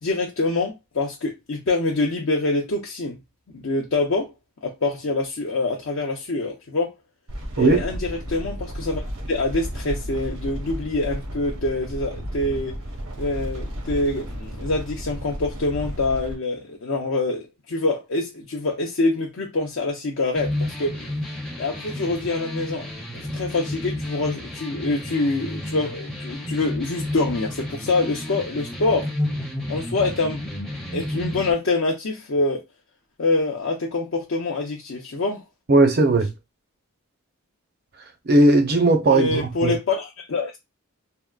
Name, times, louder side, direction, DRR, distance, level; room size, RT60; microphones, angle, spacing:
voice 1, 0.0-3.2 3.5-4.3 4.6-6.9 7.6-9.0 9.3-12.8 13.2-21.0 21.6-22.9 23.3-29.1 29.7-30.4 30.9-32.6 33.2-35.4 39.1-40.6, left 2 dB, 60° left, 0.5 m, -25 dB
sound 1, 7.3-16.3, equal, 80° right, 0.9 m, -33 dB
sound 2, 20.4-31.5, left 1 dB, 5° left, 0.5 m, -31 dB
voice 2, 35.7-36.3 38.3-39.8, right 2 dB, 45° right, 0.5 m, -17 dB
3.5 x 2.1 x 2.3 m
head